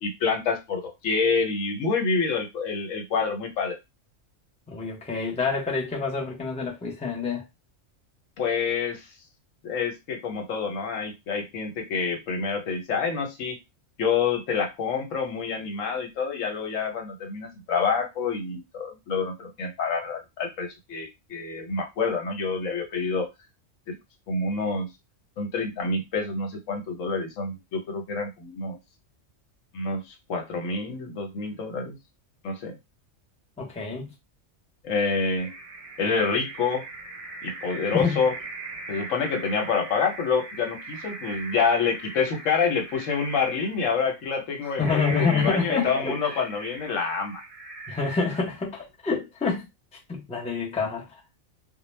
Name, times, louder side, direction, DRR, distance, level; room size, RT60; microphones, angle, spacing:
voice 1, 0.0-3.8 8.4-9.1 9.6-13.6 14.0-23.3 23.9-24.0 24.3-24.9 25.4-28.8 29.7-32.0 32.4-32.8 34.8-35.5 36.0-36.8 37.4-38.3 38.9-47.4, left 5 dB, 85° left, 1.1 m, -27 dB
voice 2, 4.7-7.4 33.6-34.1 37.9-38.3 44.6-46.4 47.9-49.7 50.1-51.1, left 4 dB, 10° left, 0.5 m, -27 dB
sound 1, 35.4-48.9, right 2 dB, 55° right, 0.3 m, -40 dB
2.2 x 2.1 x 3.1 m
omnidirectional pair, 1.3 m